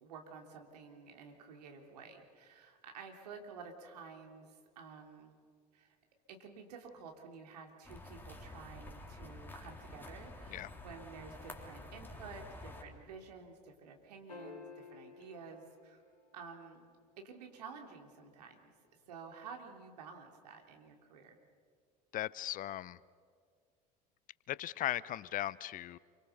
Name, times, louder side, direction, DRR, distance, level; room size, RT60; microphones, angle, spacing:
voice 1, 0.0-5.4 5.7-6.0 6.3-16.0 16.3-16.8 17.2-18.7 19.1-21.4, right 5 dB, 75° right, 3 dB, 3.2 m, -51 dB
sound 1, 7.8-12.8, left 2 dB, 10° left, 3.7 m, -49 dB
sound 2, 14.3-16.8 19.0-19.1, left 4 dB, 80° left, 2.5 m, -53 dB
voice 2, 22.1-23.0 24.5-26.0, left 13 dB, 40° left, 21 dB, 0.7 m, -38 dB
28.0 x 24.5 x 6.8 m, 2.1 s
figure-of-eight pair, 65°, 21 cm